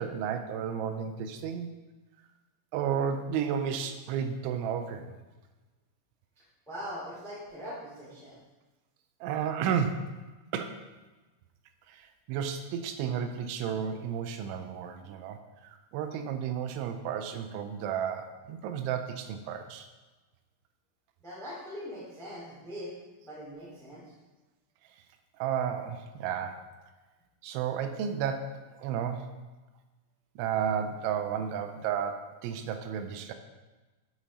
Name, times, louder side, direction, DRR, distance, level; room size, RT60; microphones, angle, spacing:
voice 1, 0.0-1.7 2.7-5.1 9.2-10.2 10.5-10.8 11.9-19.9 25.4-26.7 27.4-29.3 30.4-33.3, right 8 dB, 85° right, 7 dB, 2.9 m, -32 dB
voice 2, 6.7-8.4 21.2-22.9 23.2-24.0, equal, 5° left, -6 dB, 0.3 m, -41 dB
8.9 x 5.5 x 4.1 m, 1.2 s
omnidirectional pair, 5.4 m